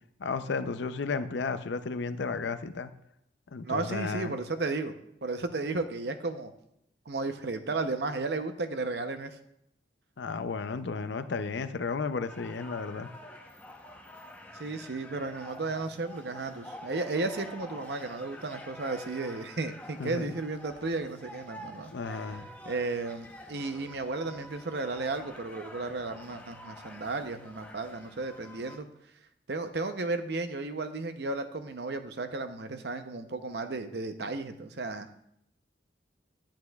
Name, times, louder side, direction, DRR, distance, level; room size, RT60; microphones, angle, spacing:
voice 1, 0.2-2.9 3.5-4.3 10.2-13.1 20.0-20.3 21.9-22.5, left 4 dB, 70° left, 11 dB, 0.5 m, -33 dB
voice 2, 3.6-4.9 5.2-6.5 7.1-9.4 14.5-21.9 22.7-28.9 29.5-35.1, right 3 dB, 60° right, 8 dB, 0.7 m, -34 dB
sound 1, 12.3-28.8, left 1 dB, 10° left, 0.7 m, -48 dB
10.5 x 9.8 x 2.3 m, 0.76 s
head